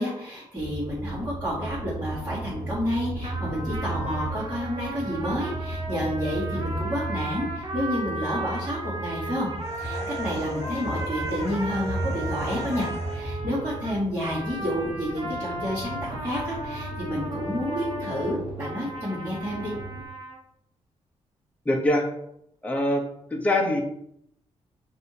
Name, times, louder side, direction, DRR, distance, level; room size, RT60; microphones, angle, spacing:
voice 1, 0.0-9.5 9.8-19.7, equal, 15° right, -11 dB, 1.5 m, -30 dB
sound 1, 0.6-20.0, right 1 dB, 35° left, 1.1 m, -35 dB
sound 2, 3.2-20.4, right 1 dB, 45° right, 0.8 m, -36 dB
sound 3, 9.6-13.5, left 3 dB, 65° left, 0.7 m, -41 dB
voice 2, 21.7-22.1 22.6-23.0 23.3-23.8, left 1 dB, 10° left, 0 dB, 0.8 m, -23 dB
6.1 x 2.7 x 2.8 m, 0.76 s
cardioid pair, 125°, 12 cm